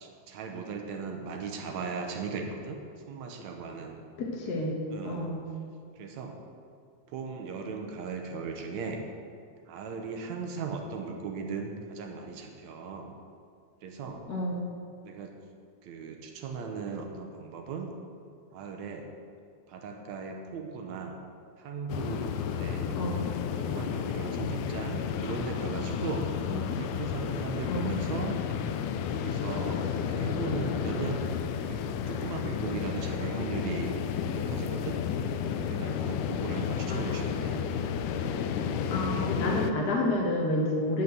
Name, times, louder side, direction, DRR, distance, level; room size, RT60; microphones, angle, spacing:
voice 1, 0.0-2.8 3.1-4.0 4.4-4.6 4.9-5.3 6.0-6.4 7.1-9.0 9.7-13.1 13.8-14.3 15.0-15.4 15.8-17.9 18.5-19.1 19.7-21.2 21.6-23.3 23.6-26.3 26.8-28.4 29.1-31.2 31.6-33.9 34.3-35.0 35.7-37.6, right 5 dB, 70° right, 3 dB, 2.0 m, -37 dB
voice 2, 4.2-4.8 5.0-5.4 14.3-14.7 22.9-23.3 26.5-26.8 27.7-27.9 36.9-37.2 38.9-41.0, left 1 dB, 55° left, -1 dB, 1.1 m, -30 dB
sound 1, 21.9-39.7, left 7 dB, 85° left, 2.1 m, -32 dB
9.2 x 5.7 x 8.0 m, 2.2 s
omnidirectional pair, 3.6 m